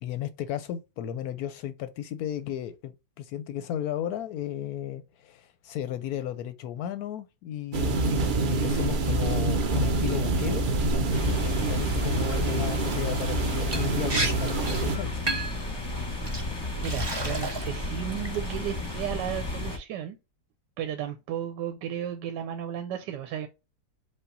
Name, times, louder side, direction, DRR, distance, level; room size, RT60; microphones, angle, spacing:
voice 1, 0.0-10.6 11.5-15.2, left 11 dB, 70° left, 0.9 m, -34 dB
sound 1, 7.7-15.0, right 2 dB, 65° right, 0.5 m, -26 dB
sound 2, 11.1-19.8, left 2 dB, 20° left, 0.8 m, -32 dB
Liquid, 13.7-13.8 14.1-14.3 14.6-14.9 15.3-15.6 16.3-16.4 16.8-17.7 18.1-18.6, right 2 dB, 20° right, 0.7 m, -31 dB
voice 2, 16.8-20.2 20.8-23.5, right 10 dB, 90° right, 1.2 m, -34 dB
5.3 x 2.3 x 3.8 m
omnidirectional pair, 1.8 m